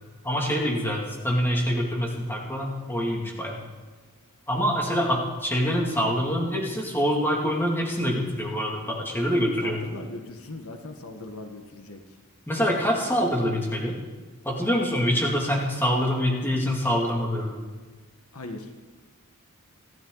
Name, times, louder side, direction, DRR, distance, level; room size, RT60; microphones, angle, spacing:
voice 1, 0.2-3.6 4.5-9.8 12.5-14.0 14.4-17.6, equal, 10° left, -2 dB, 2.5 m, -25 dB
voice 2, 9.6-12.0 18.3-18.7, left 2 dB, 75° left, 4 dB, 1.5 m, -39 dB
27.0 x 12.5 x 4.0 m, 1.3 s
head